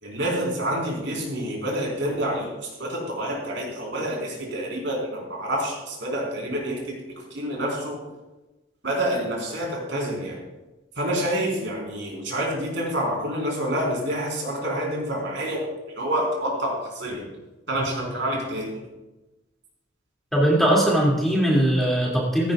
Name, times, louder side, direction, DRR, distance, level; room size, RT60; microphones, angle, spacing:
voice 1, 0.0-2.5 2.8-7.0 7.3-8.0 8.8-10.4 11.0-15.6 16.0-17.2 17.7-18.7, right 1 dB, 65° right, -2 dB, 4.4 m, -27 dB
voice 2, 20.3-22.5, right 1 dB, ahead, -5 dB, 2.5 m, -20 dB
16.5 x 15.0 x 2.4 m, 1.1 s
head